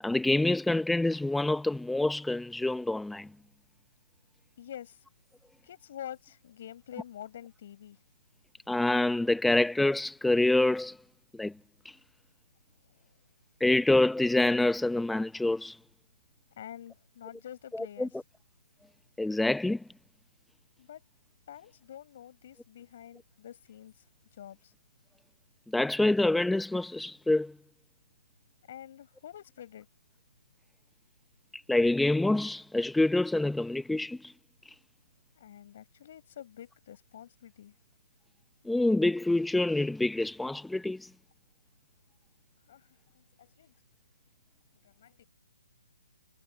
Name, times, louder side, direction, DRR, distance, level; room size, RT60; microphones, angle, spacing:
voice 1, 0.0-3.3 8.7-11.0 11.3-11.5 11.8-12.0 13.6-15.8 17.7-18.1 19.2-19.8 25.7-27.5 31.5-34.3 38.7-41.1, left 2 dB, 5° left, 0.7 m, -26 dB
voice 2, 4.6-5.0 5.6-8.0 16.6-18.1 20.8-21.0 21.5-23.9 24.4-24.7 28.7-29.9 35.3-37.7 42.7-42.8 43.1-43.7 44.8-45.3, left 10 dB, 45° left, 4.9 m, -47 dB
figure-of-eight pair, 135°, 0 cm